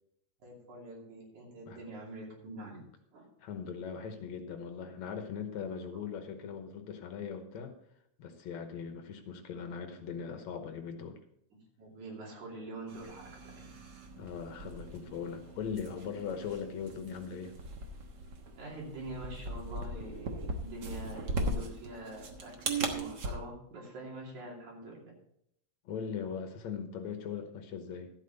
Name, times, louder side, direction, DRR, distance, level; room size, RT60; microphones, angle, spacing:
voice 1, 0.4-2.9 3.1-3.3 11.5-13.6 18.6-25.1, right 1 dB, 70° right, -2 dB, 4.1 m, -45 dB
voice 2, 3.4-7.7 8.2-11.2 14.2-17.5 25.9-28.1, left 6 dB, 70° left, 6 dB, 2.3 m, -40 dB
sound 1, 12.9-23.3, right 2 dB, 55° right, 1.3 m, -39 dB
13.0 x 8.2 x 4.1 m, 0.73 s
omnidirectional pair, 3.5 m